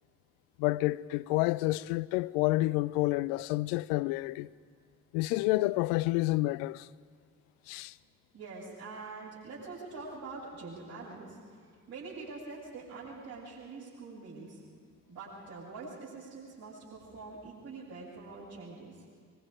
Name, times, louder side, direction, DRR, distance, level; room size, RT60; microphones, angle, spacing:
voice 1, 0.6-4.5 5.1-6.9 7.7-7.9, left 19 dB, 65° left, 0.5 m, -29 dB
voice 2, 8.3-14.6 15.1-19.0, right 3 dB, 60° right, 7.3 m, -45 dB
23.5 x 23.0 x 5.2 m
figure-of-eight pair, 40°, 43 cm